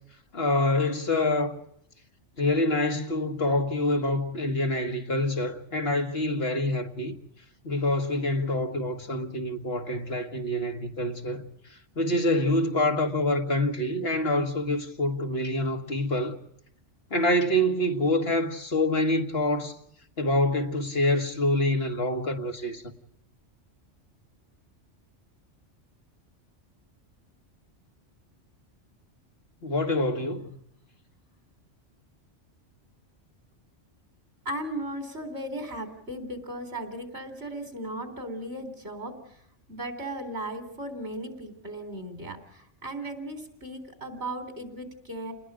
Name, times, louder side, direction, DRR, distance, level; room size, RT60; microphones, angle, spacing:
voice 1, 0.3-1.6 2.4-7.2 7.7-11.4 12.0-16.4 17.1-19.7 20.2-22.9 29.6-30.5, left 1 dB, 55° left, 1.9 m, -26 dB
voice 2, 34.5-39.4 39.7-45.3, right 1 dB, 65° right, 4.2 m, -36 dB
29.5 x 20.5 x 5.0 m
omnidirectional pair, 1.2 m